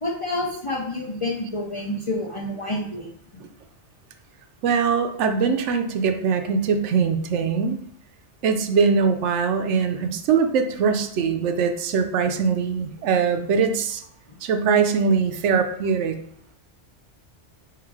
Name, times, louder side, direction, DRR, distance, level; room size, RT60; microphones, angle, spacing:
voice 1, 0.0-3.4 14.3-14.4, left 1 dB, 35° left, -2 dB, 0.6 m, -29 dB
voice 2, 4.6-7.8 8.4-14.0 14.4-16.2, right 5 dB, 80° right, 7 dB, 0.9 m, -22 dB
3.8 x 2.6 x 4.6 m, 0.65 s
omnidirectional pair, 1.2 m